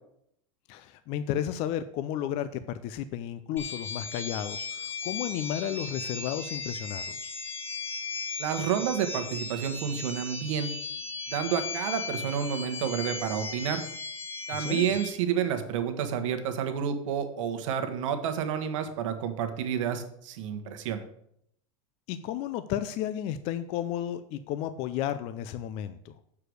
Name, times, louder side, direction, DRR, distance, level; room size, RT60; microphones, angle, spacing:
voice 1, 0.7-7.3 14.5-14.9 22.1-26.2, left 10 dB, 40° left, 12 dB, 0.4 m, -33 dB
sound 1, 3.6-15.1, left 4 dB, 15° left, 1.2 m, -37 dB
voice 2, 8.4-10.7 11.3-13.8 14.5-21.0, right 8 dB, 75° right, 8 dB, 1.2 m, -30 dB
6.6 x 4.9 x 6.3 m, 0.71 s
supercardioid pair, 155°, 17 cm